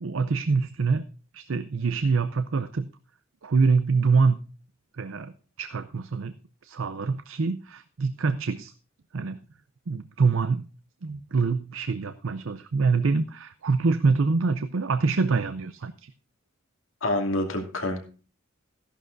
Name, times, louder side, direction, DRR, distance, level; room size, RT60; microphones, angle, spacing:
voice 1, 0.0-1.1 1.3-2.9 3.4-4.4 5.0-6.3 6.6-8.7 9.1-9.4 9.9-10.7 11.0-16.1, right 4 dB, 80° right, 11 dB, 0.6 m, -25 dB
voice 2, 17.0-18.1, left 1 dB, 75° left, 3 dB, 2.6 m, -27 dB
14.5 x 11.5 x 2.6 m, 0.36 s
head